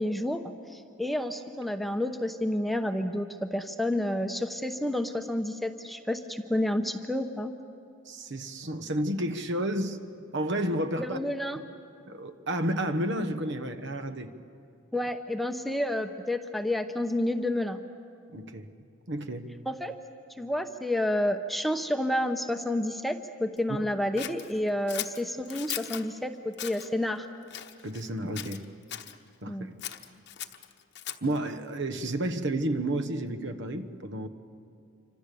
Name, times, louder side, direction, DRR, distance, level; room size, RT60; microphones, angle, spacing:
voice 1, 0.0-7.5 11.0-11.6 14.9-17.8 19.7-20.0 20.4-27.3 29.5-29.7, left 1 dB, ahead, 6 dB, 0.8 m, -30 dB
voice 2, 8.1-10.0 10.3-11.2 12.0-14.3 18.3-18.7 19.1-19.6 27.8-28.6 29.4-29.7 31.2-34.3, right 1 dB, 60° right, 9 dB, 1.3 m, -31 dB
Scissors, 24.2-26.1 26.5-26.9 27.5-28.1 28.4-29.2 29.8-31.4, left 11 dB, 55° left, 1.0 m, -38 dB
28.0 x 25.5 x 6.9 m, 2.5 s
head